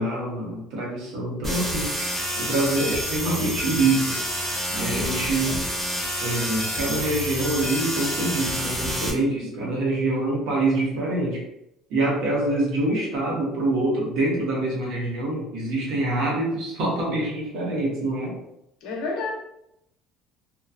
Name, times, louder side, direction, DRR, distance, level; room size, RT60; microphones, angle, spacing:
voice 1, 0.0-4.2 4.7-5.7 6.2-11.5 11.9-18.4, right 2 dB, 65° right, -3 dB, 1.1 m, -25 dB
sound 1, 1.4-9.1, equal, 15° right, 1.0 m, -28 dB
voice 2, 18.8-19.3, left 3 dB, 70° left, 0 dB, 0.8 m, -30 dB
2.8 x 2.3 x 2.5 m, 0.81 s
cardioid pair, 170°, 0 cm